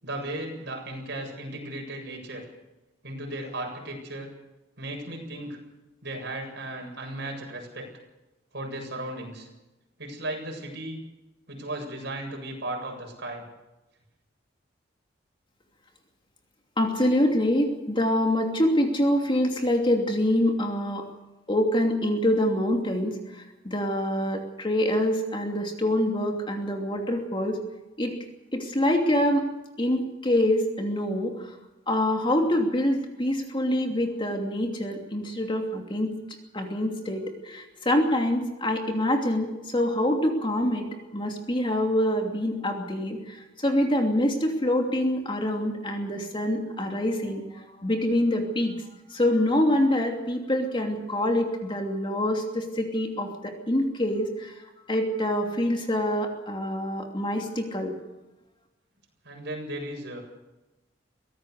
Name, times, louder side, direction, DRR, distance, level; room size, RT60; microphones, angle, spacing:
voice 1, 0.0-2.4 3.0-4.3 4.8-5.6 6.0-7.9 8.5-9.5 10.0-11.0 11.5-13.4 59.2-60.2, right 1 dB, 60° right, 1 dB, 7.7 m, -35 dB
voice 2, 16.8-21.0 21.5-27.6 28.0-28.1 28.5-29.4 29.8-31.6 31.9-36.1 36.5-40.9 41.1-54.5 54.9-57.9, left 1 dB, 25° left, 2 dB, 2.8 m, -25 dB
24.0 x 17.0 x 6.7 m, 0.99 s
head